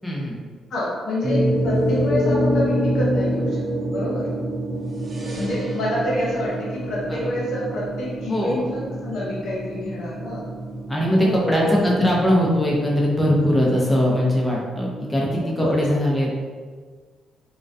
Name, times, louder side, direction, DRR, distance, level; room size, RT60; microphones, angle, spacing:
voice 1, 0.0-0.4 7.1-7.3 8.3-8.6 10.9-16.3, equal, 10° left, -4 dB, 0.6 m, -21 dB
voice 2, 0.7-3.6 3.9-4.3 5.3-10.4 11.2-11.7 15.4-15.8, left 1 dB, 65° left, -5 dB, 0.8 m, -27 dB
sound 1, 1.2-14.6, equal, 40° right, 0.4 m, -27 dB
2.2 x 2.1 x 2.6 m, 1.5 s
cardioid pair, 90°, 0 cm